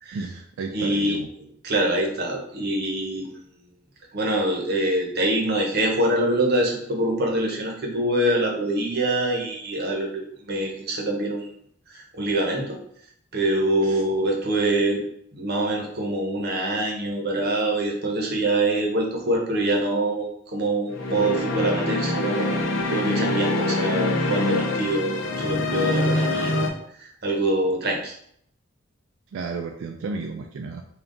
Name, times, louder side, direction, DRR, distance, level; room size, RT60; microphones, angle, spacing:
voice 1, 0.1-1.3 13.8-14.0 29.3-30.8, right 4 dB, 90° right, 3 dB, 0.3 m, -33 dB
voice 2, 0.7-1.2 1.6-3.3 4.1-11.5 11.9-12.8 13.3-15.0 15.3-22.6 22.9-26.7 27.0-28.1, right 1 dB, 55° right, 1 dB, 0.8 m, -25 dB
sound 1, 20.9-26.7, left 2 dB, 80° left, 0.6 m, -24 dB
3.6 x 2.3 x 3.8 m, 0.68 s
head